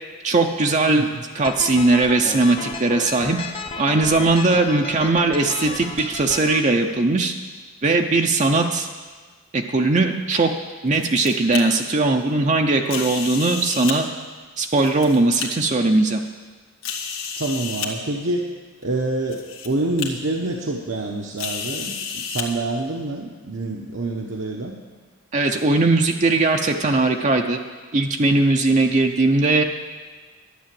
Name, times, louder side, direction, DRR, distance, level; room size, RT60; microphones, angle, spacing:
voice 1, 0.2-1.1 1.3-3.4 3.8-7.3 7.8-8.9 9.5-10.5 10.8-14.1 14.6-16.2 25.3-27.6 27.9-29.6, right 2 dB, 35° right, 3 dB, 0.7 m, -19 dB
sound 1, 1.4-6.6, left 3 dB, 25° left, 0.7 m, -33 dB
sound 2, 10.7-11.6 12.9-14.0 14.7-15.5 16.1-16.2 16.8-17.9 18.8-18.9 19.3-19.7 20.0-20.1 21.4-22.5, left 7 dB, 75° left, 1.6 m, -31 dB
voice 2, 17.3-18.5 18.8-24.8, right 2 dB, 65° right, 0 dB, 1.0 m, -26 dB
11.5 x 9.8 x 7.7 m, 1.4 s
head